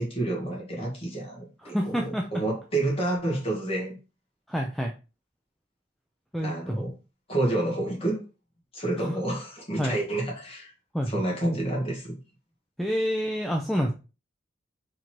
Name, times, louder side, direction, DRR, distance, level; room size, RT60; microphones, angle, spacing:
voice 1, 0.0-4.0 6.4-6.9 7.3-8.2 8.7-10.7 11.1-12.2, right 1 dB, 30° left, 1.7 m, -29 dB
voice 2, 1.6-2.3 4.5-4.9 6.3-6.8 9.1-9.2 9.8-10.0 10.9-11.1 12.8-13.9, equal, ahead, 0.4 m, -27 dB
3.8 x 3.0 x 4.4 m
head